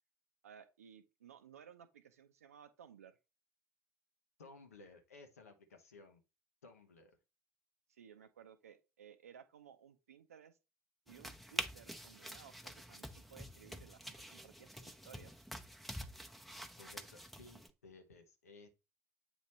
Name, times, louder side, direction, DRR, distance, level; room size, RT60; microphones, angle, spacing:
voice 1, 0.4-3.2 7.9-10.6 11.1-15.4, right 8 dB, 80° right, 0.6 m, -58 dB
voice 2, 4.4-6.2 6.6-7.2 16.8-18.7, left 3 dB, 80° left, 0.9 m, -58 dB
sound 1, 11.1-17.7, equal, ahead, 0.7 m, -47 dB
8.0 x 3.1 x 4.2 m
figure-of-eight pair, 55°, 8 cm